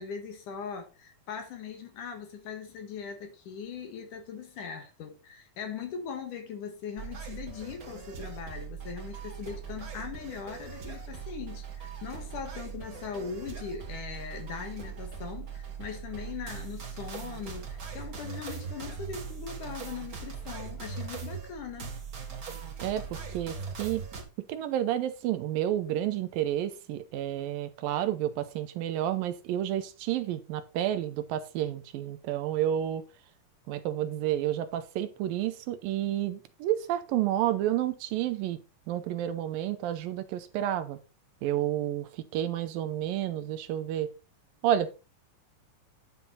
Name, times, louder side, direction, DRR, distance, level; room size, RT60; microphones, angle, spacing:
voice 1, 0.0-21.9, left 6 dB, 65° left, 3.1 m, -40 dB
sound 1, 7.0-24.2, right 6 dB, 35° right, 1.5 m, -40 dB
voice 2, 22.8-24.0 24.5-33.0 33.7-38.6 38.9-41.0 41.4-44.1 44.6-44.9, right 12 dB, 85° right, 2.6 m, -30 dB
10.5 x 5.8 x 4.2 m
omnidirectional pair, 4.1 m